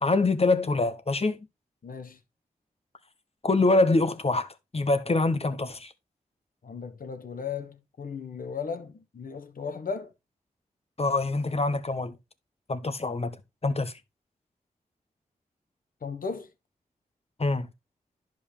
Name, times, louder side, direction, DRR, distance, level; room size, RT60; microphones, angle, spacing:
voice 1, 0.0-1.5 3.4-5.9 11.0-12.1 12.7-13.4 13.6-13.9 17.4-17.7, left 2 dB, 40° left, 1.3 m, -25 dB
voice 2, 1.8-2.2 6.6-10.1 16.0-16.5, left 5 dB, 70° left, 1.3 m, -36 dB
11.0 x 5.3 x 3.3 m
cardioid pair, 45°, 15 cm